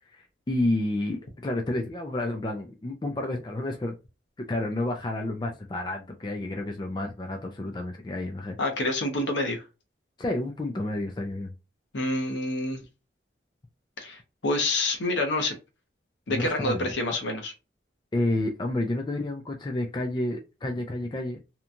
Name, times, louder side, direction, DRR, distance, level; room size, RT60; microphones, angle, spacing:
voice 1, 0.1-4.0 4.5-8.6 10.2-11.5 16.3-16.9 18.1-21.4, left 1 dB, 25° left, 0.3 m, -30 dB
voice 2, 8.6-9.6 11.9-12.8 14.0-15.5 16.3-17.5, left 2 dB, 70° left, 0.8 m, -27 dB
2.9 x 2.2 x 2.5 m
head